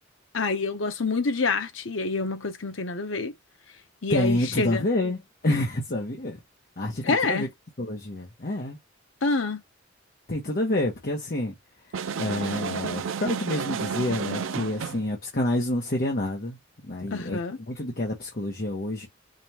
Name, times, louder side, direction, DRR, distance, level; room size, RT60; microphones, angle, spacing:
voice 1, 0.3-3.3 4.0-4.8 7.0-7.5 9.2-9.6 17.1-17.6, left 3 dB, 80° left, 0.9 m, -27 dB
voice 2, 4.1-5.2 5.4-6.4 6.8-7.5 7.8-8.8 10.3-11.5 12.2-16.6 16.8-17.4 17.7-19.1, left 1 dB, 50° left, 1.2 m, -28 dB
sound 1, 11.9-15.1, right 6 dB, 85° right, 0.5 m, -31 dB
5.2 x 2.5 x 2.9 m
head